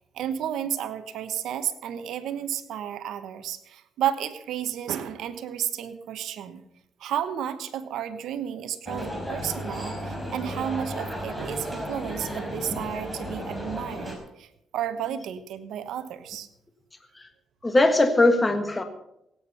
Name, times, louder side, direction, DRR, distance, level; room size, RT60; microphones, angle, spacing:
voice 1, 0.1-6.6 7.0-16.5, right 10 dB, 80° right, 10 dB, 1.2 m, -32 dB
sound 1, 8.9-14.2, equal, 5° left, 4.4 m, -34 dB
voice 2, 17.6-18.8, left 2 dB, 20° left, 7 dB, 1.5 m, -20 dB
17.0 x 9.0 x 5.7 m, 0.82 s
cardioid pair, 90°, 0 cm